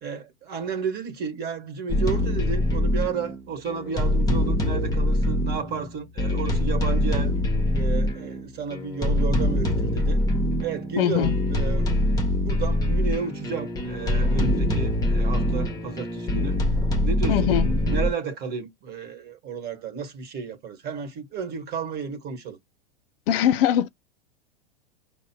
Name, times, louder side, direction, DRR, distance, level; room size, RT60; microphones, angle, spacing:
voice 1, 0.0-7.3 7.7-10.2 10.6-16.6 17.0-22.6, right 6 dB, 30° right, 1.4 m, -32 dB
sound 1, 1.9-18.1, left 1 dB, 10° left, 0.8 m, -24 dB
voice 2, 11.0-11.3 17.3-17.7 23.3-23.9, left 10 dB, 70° left, 0.6 m, -21 dB
4.9 x 2.1 x 4.5 m
hypercardioid pair, 125°, 30 cm